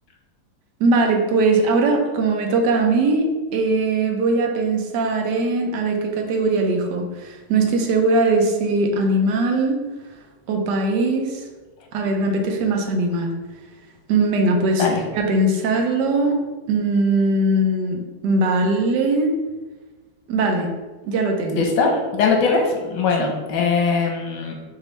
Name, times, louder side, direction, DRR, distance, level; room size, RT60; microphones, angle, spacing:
voice 1, 0.8-9.8 10.5-11.5 11.9-13.3 14.1-16.4 16.7-19.4 20.3-20.7 21.0-21.7, right 2 dB, 80° right, 3 dB, 1.3 m, -20 dB
voice 2, 21.5-24.6, left 4 dB, 85° left, 2 dB, 1.4 m, -20 dB
5.9 x 2.6 x 3.2 m, 1.2 s
omnidirectional pair, 1.8 m